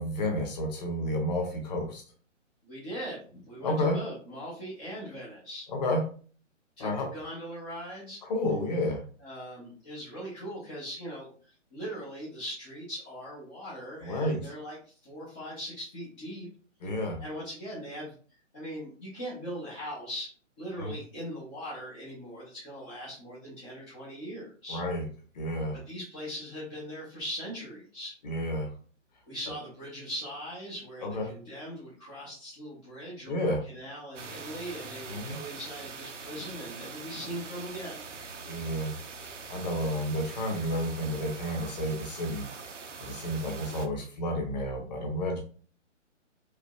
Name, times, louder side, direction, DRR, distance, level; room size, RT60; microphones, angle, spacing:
voice 1, 0.0-2.0 3.6-4.0 5.7-6.0 6.8-7.1 8.2-9.0 14.0-14.5 16.8-17.2 20.8-20.9 24.7-25.1 25.3-25.8 28.2-28.7 31.0-31.3 33.3-33.6 35.1-35.4 38.5-38.9 39.5-42.5 43.0-45.4, left 1 dB, 35° left, 2 dB, 1.1 m, -31 dB
voice 2, 2.6-5.7 6.8-8.2 9.2-11.3 11.7-16.5 17.2-18.1 18.5-20.3 20.6-24.8 25.7-28.1 29.3-38.1, equal, 10° left, -9 dB, 0.5 m, -40 dB
sound 1, 34.1-43.9, right 5 dB, 70° right, 0.8 m, -43 dB
4.9 x 2.5 x 2.3 m, 0.42 s
figure-of-eight pair, 135°, 38 cm